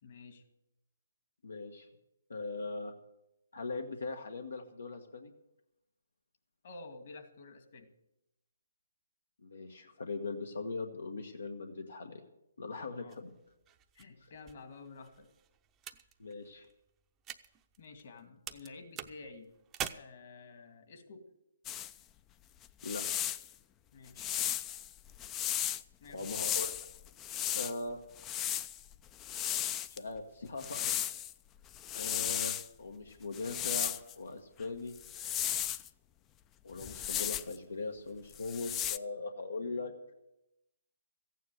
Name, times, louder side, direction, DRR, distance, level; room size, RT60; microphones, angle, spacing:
voice 1, 0.0-0.4 6.6-7.9 13.0-13.2 13.9-15.3 17.8-19.5 19.9-21.3 23.9-24.3 26.0-26.5 39.7-39.9, left 3 dB, 55° left, 6 dB, 2.1 m, -51 dB
voice 2, 1.4-1.9 2.3-2.9 3.5-5.3 9.4-12.2 12.6-13.3 14.2-14.3 16.2-16.7 22.8-23.0 26.1-26.7 27.5-28.4 29.9-30.9 31.9-35.0 36.6-39.9, left 3 dB, 85° left, 4 dB, 1.4 m, -40 dB
sound 1, 13.1-18.2 18.5-19.9, right 10 dB, 20° right, 0.7 m, -46 dB
sound 2, 21.7-21.9 22.6-23.5 24.2-25.8 26.2-27.7 28.2-30.0 30.6-31.3 31.7-32.7 33.3-34.1 35.0-35.9 36.8-37.6 38.3-39.0, left 11 dB, 20° left, 0.4 m, -35 dB
14.5 x 9.3 x 7.9 m, 0.91 s
hypercardioid pair, 145°, 0 cm